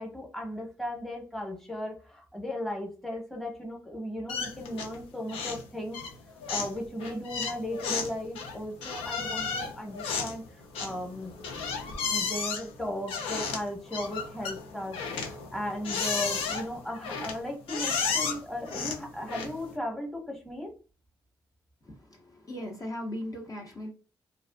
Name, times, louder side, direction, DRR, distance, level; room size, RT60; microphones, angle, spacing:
voice 1, 0.0-6.0 6.5-10.4 10.8-11.4 12.1-20.7, left 1 dB, 5° left, 1 dB, 1.0 m, -36 dB
sound 1, 4.3-5.0 5.3-5.7 5.9-19.7, left 5 dB, 85° left, 0.5 m, -33 dB
voice 2, 21.8-23.9, left 1 dB, 40° left, 0 dB, 0.8 m, -38 dB
2.5 x 2.3 x 2.2 m, 0.36 s
supercardioid pair, 50°, 9 cm